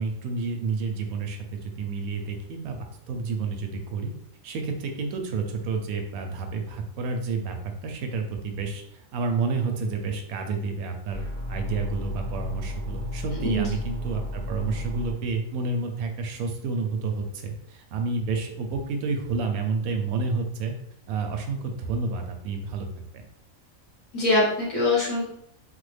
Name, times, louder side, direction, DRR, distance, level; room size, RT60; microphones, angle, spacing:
voice 1, 0.0-4.1 4.4-8.8 9.1-11.2 11.5-20.7 21.1-22.9 23.1-23.2, right 4 dB, 85° right, 5 dB, 1.0 m, -30 dB
sound 1, 11.1-15.1, left 1 dB, 25° left, 1.0 m, -33 dB
voice 2, 13.4-13.7 24.1-25.3, left 2 dB, 70° left, -6 dB, 1.4 m, -23 dB
3.3 x 2.1 x 3.2 m, 0.71 s
omnidirectional pair, 1.5 m